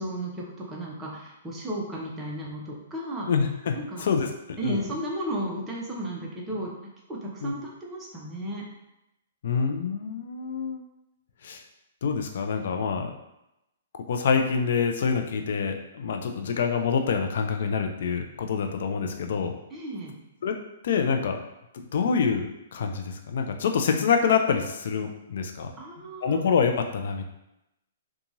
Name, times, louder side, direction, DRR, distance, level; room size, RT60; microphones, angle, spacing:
voice 1, 0.0-3.3 3.7-4.1 4.6-6.7 7.1-8.6 19.7-20.2 25.8-26.4, right 1 dB, 10° right, -4 dB, 0.7 m, -34 dB
voice 2, 3.3-4.3 4.6-4.8 7.4-7.5 9.4-10.8 11.4-11.6 12.0-13.1 14.1-19.6 20.4-20.6 20.8-21.4 21.7-25.7 26.2-27.2, left 6 dB, 65° left, 5 dB, 0.4 m, -26 dB
2.9 x 2.3 x 2.6 m, 0.88 s
hypercardioid pair, 140°, 0 cm